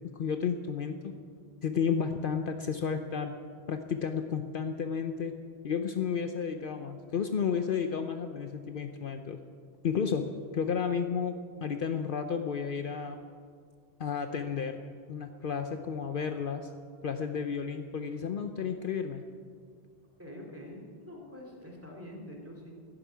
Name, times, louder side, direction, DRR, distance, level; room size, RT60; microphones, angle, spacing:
voice 1, 0.1-1.1 1.6-3.4 3.7-5.3 5.6-9.4 9.8-13.2 14.0-14.8 15.1-16.7 17.0-19.2, left 6 dB, 60° left, 7 dB, 0.8 m, -32 dB
voice 2, 20.2-22.7, left 1 dB, 15° right, -1 dB, 2.7 m, -45 dB
12.0 x 11.0 x 9.2 m, 2.1 s
omnidirectional pair, 1.1 m